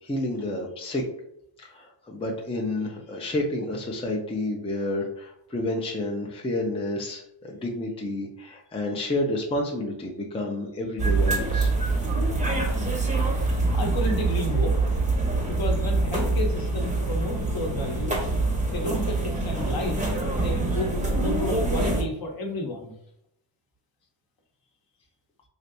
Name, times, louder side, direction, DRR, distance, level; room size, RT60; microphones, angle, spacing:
voice 1, 0.0-1.0 1.6-11.7, left 1 dB, 10° left, 0 dB, 0.5 m, -30 dB
sound 1, 11.0-22.0, right 3 dB, 15° right, 0.8 m, -25 dB
voice 2, 13.7-14.8 15.5-18.3 18.7-22.9, left 1 dB, 45° left, 1 dB, 0.9 m, -32 dB
3.3 x 2.6 x 2.6 m, 0.77 s
cardioid pair, 75°, 49 cm